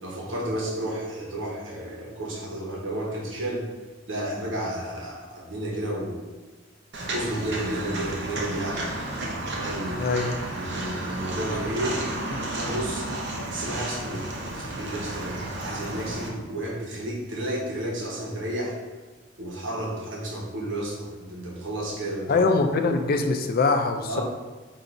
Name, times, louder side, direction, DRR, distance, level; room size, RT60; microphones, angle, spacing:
voice 1, 0.0-3.7 4.1-6.2 7.1-8.9 9.6-10.1 10.5-13.1 13.5-18.8 19.4-22.4 24.1-24.2, right 1 dB, 80° right, -2 dB, 1.1 m, -32 dB
Walk footsteps, 6.9-16.3, right 2 dB, 60° right, 0.7 m, -32 dB
voice 2, 10.0-10.4 12.3-12.4 22.3-24.2, left 3 dB, 50° left, 6 dB, 0.4 m, -23 dB
3.9 x 2.6 x 4.5 m, 1.3 s
head